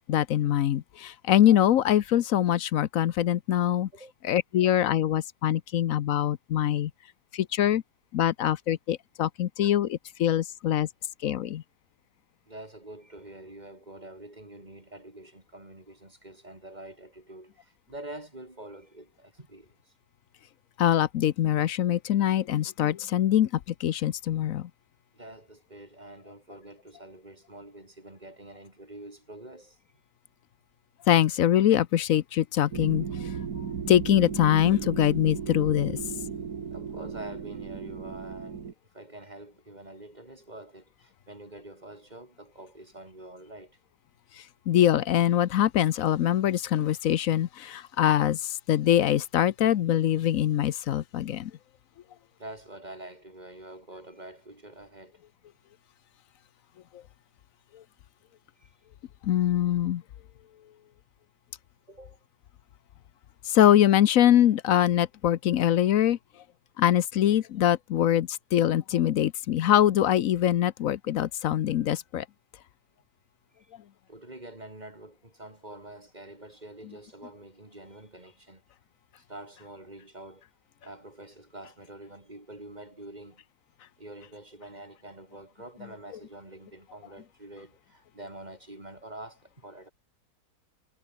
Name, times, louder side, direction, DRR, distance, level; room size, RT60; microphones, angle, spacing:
voice 1, 0.1-3.9 4.2-6.9 7.3-7.8 8.1-10.9 11.2-11.6 20.8-24.7 31.1-33.3 33.9-36.0 44.7-51.5 57.7-57.8 59.2-60.0 63.4-66.2 66.8-72.3, left 11 dB, 65° left, 1.0 m, -23 dB
voice 2, 12.5-19.9 25.1-29.8 36.7-43.8 52.4-55.2 58.6-58.7 61.9-62.2 73.5-73.7 74.1-78.6 79.1-80.4 80.8-83.4 84.0-89.9, right 1 dB, 25° right, 3.8 m, -46 dB
sound 1, 32.7-38.7, right 6 dB, 70° right, 2.2 m, -35 dB
omnidirectional pair, 1.7 m